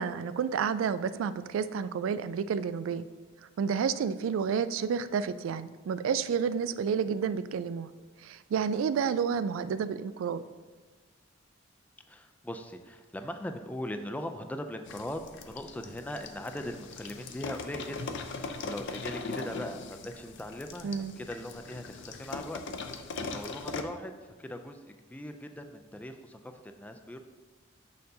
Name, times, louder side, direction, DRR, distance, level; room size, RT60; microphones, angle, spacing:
voice 1, 0.0-3.0 3.6-7.9 8.2-10.4 20.8-21.2, right 6 dB, 80° right, 13 dB, 0.3 m, -30 dB
voice 2, 12.1-22.6 22.9-27.2, left 1 dB, 10° left, 7 dB, 0.3 m, -40 dB
sound 1, 14.9-23.8, left 4 dB, 65° left, 0.5 m, -40 dB
6.6 x 6.5 x 2.7 m, 1.3 s
head